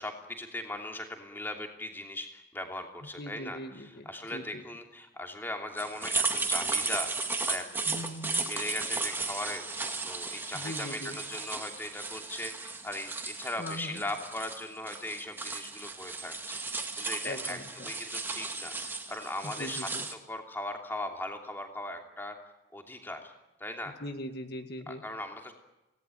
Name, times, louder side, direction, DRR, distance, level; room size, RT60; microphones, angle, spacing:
voice 1, 0.0-7.1 7.5-7.6 8.5-17.6 17.8-22.3 22.7-23.3 23.6-23.9 24.9-25.6, left 1 dB, 10° left, 3 dB, 2.9 m, -39 dB
voice 2, 3.2-4.6 7.9-8.5 10.5-11.2 13.6-14.0 17.2-17.9 19.4-20.1 23.9-25.0, left 1 dB, 55° left, 6 dB, 2.0 m, -40 dB
sound 1, 5.8-20.1, right 3 dB, 10° right, 2.1 m, -35 dB
27.5 x 18.5 x 9.3 m, 0.99 s
head